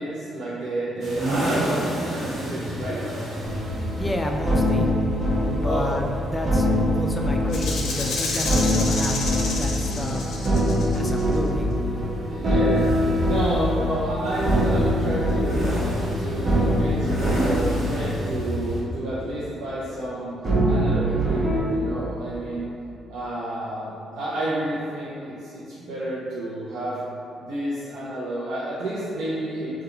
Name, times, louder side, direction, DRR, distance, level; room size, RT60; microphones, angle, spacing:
voice 1, 0.0-3.1 5.6-5.9 12.2-13.0 13.2-15.6 16.1-20.3 20.6-22.6 23.1-27.0 27.5-29.8, right 1 dB, 85° right, -10 dB, 0.5 m, -30 dB
sound 1, 1.0-18.8, equal, 65° right, 1.1 m, -32 dB
sound 2, 3.4-19.0 19.3-19.6 20.4-21.6, equal, 45° right, 0.6 m, -24 dB
voice 2, 3.9-4.9 5.3-9.3 9.6-10.5 10.9-11.8, left 1 dB, 15° left, 2 dB, 0.3 m, -31 dB
Rattle (instrument), 7.5-11.4, left 3 dB, 75° left, 0.5 m, -30 dB
3.6 x 2.3 x 2.8 m, 2.7 s
cardioid pair, 90°, 0 cm